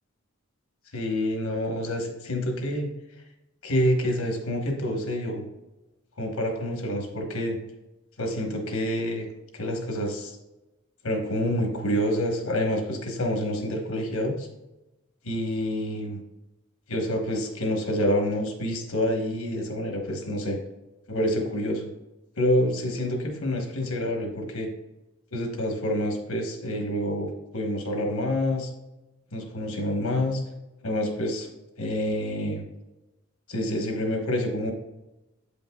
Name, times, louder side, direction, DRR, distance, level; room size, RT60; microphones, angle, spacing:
voice 1, 0.9-2.9 3.6-5.4 6.2-7.6 8.2-9.3 9.5-10.4 11.0-14.5 15.2-16.2 16.9-20.6 21.1-21.9 22.4-24.7 25.3-28.7 29.3-30.4 30.8-31.5 31.8-32.6 33.5-34.7, left 1 dB, 85° left, 3 dB, 1.2 m, -27 dB
8.4 x 5.3 x 2.3 m, 0.98 s
head